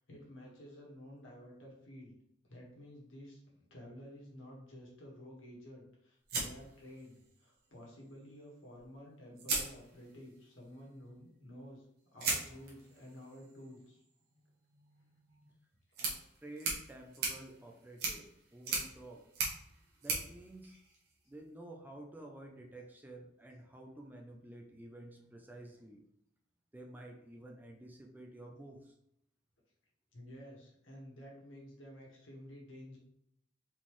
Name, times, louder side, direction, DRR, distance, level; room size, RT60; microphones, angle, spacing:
voice 1, 0.1-2.1 2.5-11.8 12.1-14.0 30.1-33.0, equal, 85° left, -2 dB, 1.6 m, -52 dB
cigarette lighter, 6.3-7.4 8.8-8.9 9.4-10.4 12.2-21.4, right 3 dB, 55° right, 1.3 m, -40 dB
voice 2, 16.0-19.3 20.0-20.8 21.3-26.1 26.7-28.9, right 1 dB, 10° right, 1 dB, 0.5 m, -51 dB
4.1 x 3.8 x 3.1 m, 0.74 s
head